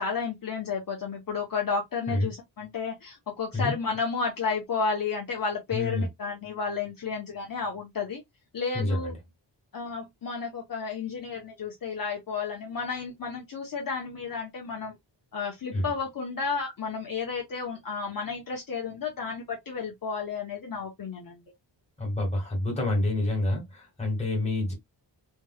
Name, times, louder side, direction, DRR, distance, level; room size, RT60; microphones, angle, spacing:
voice 1, 0.0-8.2 8.5-9.1 9.7-14.9 15.3-21.4, left 5 dB, 50° left, 0.9 m, -32 dB
voice 2, 5.7-6.1 8.7-9.2 15.7-15.9 22.0-24.7, left 2 dB, 15° left, 1.9 m, -28 dB
3.3 x 3.3 x 2.2 m
wide cardioid pair, 160°, 44 cm